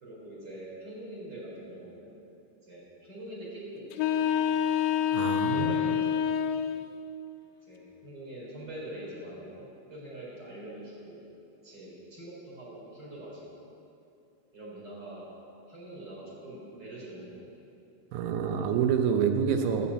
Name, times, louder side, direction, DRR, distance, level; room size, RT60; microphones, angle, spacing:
voice 1, 0.0-2.2 2.7-4.6 5.5-6.2 7.7-11.2 11.6-13.5 14.5-15.3 15.7-17.5, right 1 dB, 25° right, -5 dB, 4.2 m, -44 dB
sound 1, 3.9-6.9, left 9 dB, 90° left, 2.0 m, -27 dB
voice 2, 5.1-5.8 18.1-19.9, right 7 dB, 80° right, 6 dB, 2.7 m, -27 dB
11.5 x 8.5 x 8.4 m, 2.7 s
omnidirectional pair, 4.5 m